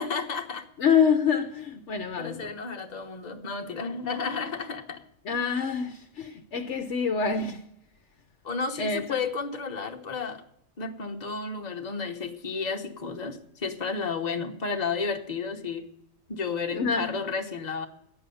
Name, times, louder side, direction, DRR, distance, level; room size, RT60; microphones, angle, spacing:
voice 1, 0.0-0.7 2.2-5.0 8.4-10.4 10.8-15.8 16.3-17.9, left 4 dB, 35° left, 1.1 m, -32 dB
voice 2, 0.8-2.5 5.2-7.7 8.8-9.2 16.7-17.2, left 6 dB, 65° left, 1.0 m, -26 dB
13.0 x 10.0 x 6.9 m
omnidirectional pair, 1.4 m